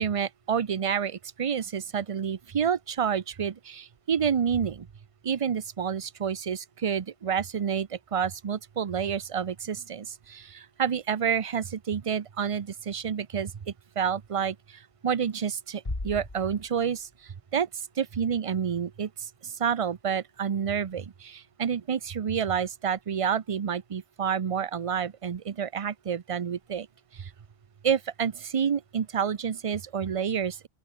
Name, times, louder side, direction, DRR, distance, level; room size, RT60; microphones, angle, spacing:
voice 1, 0.0-4.9 5.2-13.5 14.0-14.6 15.0-17.1 17.5-17.7 18.0-19.1 19.6-26.9 27.2-27.3 27.8-30.6, right 7 dB, 40° right, 0.6 m, -29 dB
Bass drum, 15.8-17.5, left 2 dB, 30° left, 2.6 m, -38 dB
open air
omnidirectional pair, 1.1 m